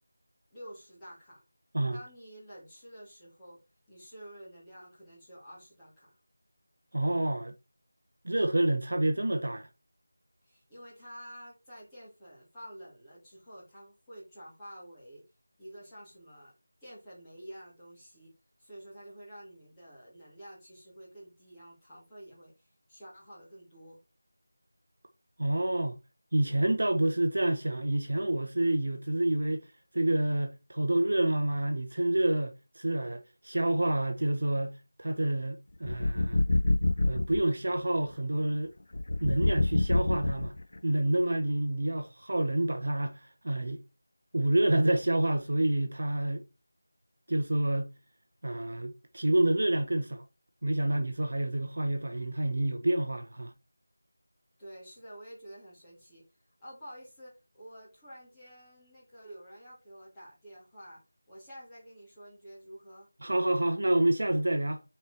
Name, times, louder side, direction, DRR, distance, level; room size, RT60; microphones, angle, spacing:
voice 1, 0.5-1.4 1.9-3.6 3.9-6.1 10.4-15.2 15.6-16.5 16.8-18.3 18.6-24.0 54.6-56.2 56.6-61.0 61.3-63.1, equal, 5° left, 2.7 m, -49 dB
voice 2, 6.9-7.6 8.2-9.7 25.4-26.0 26.3-29.7 29.9-36.4 37.1-38.7 39.2-40.5 40.8-43.8 44.3-46.5 47.3-47.9 48.4-50.2 50.6-53.5 63.2-64.8, right 1 dB, 50° right, 1.0 m, -28 dB
sound 1, 35.8-37.4 38.9-40.8, left 2 dB, 40° left, 0.4 m, -27 dB
7.5 x 4.6 x 4.4 m
figure-of-eight pair, 180°, 0 cm